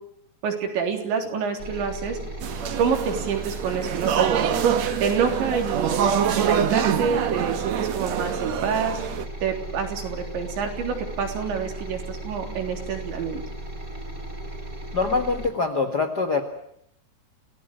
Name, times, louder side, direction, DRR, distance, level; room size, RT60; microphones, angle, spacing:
voice 1, 0.4-2.2 2.8-4.6 5.0-6.0 6.3-9.0 9.4-13.4, right 6 dB, 85° right, 4 dB, 5.8 m, -27 dB
sound 1, 1.6-15.5, right 1 dB, 20° right, 4.5 m, -36 dB
sound 2, 2.4-9.2, right 8 dB, 60° right, 1.8 m, -25 dB
voice 2, 14.9-16.4, left 4 dB, 55° left, 7 dB, 1.1 m, -24 dB
29.0 x 17.0 x 9.2 m, 0.74 s
omnidirectional pair, 5.1 m